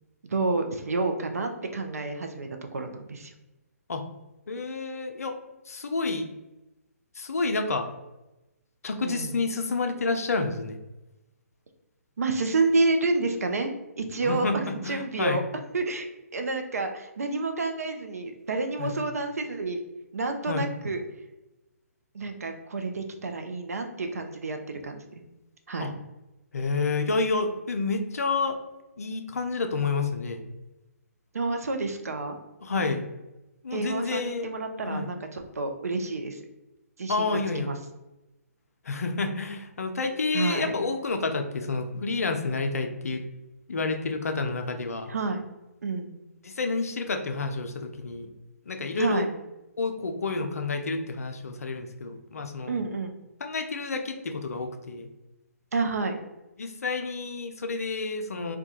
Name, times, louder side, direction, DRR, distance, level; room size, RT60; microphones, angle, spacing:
voice 1, 0.2-3.3 9.0-9.4 12.2-13.7 14.0-15.4 15.7-16.1 16.3-19.8 20.1-21.0 22.1-25.0 25.7-25.9 31.3-32.4 33.7-36.4 37.0-37.8 40.3-40.7 45.1-45.4 45.8-46.2 49.0-49.3 52.7-53.2 55.7-56.2, right 3 dB, 70° right, 5 dB, 0.4 m, -29 dB
voice 2, 4.5-5.4 5.7-6.2 7.2-7.9 8.8-10.8 14.2-15.4 18.8-19.0 20.5-20.7 25.8-25.9 26.5-28.6 29.0-30.4 32.6-33.0 33.6-34.5 34.8-35.1 37.1-37.7 38.8-43.2 43.7-45.1 46.4-48.3 48.7-49.3 49.8-52.7 53.4-55.1 56.6-58.6, left 3 dB, 70° left, 5 dB, 0.4 m, -29 dB
2.2 x 2.2 x 2.8 m, 0.98 s
figure-of-eight pair, 135°, 8 cm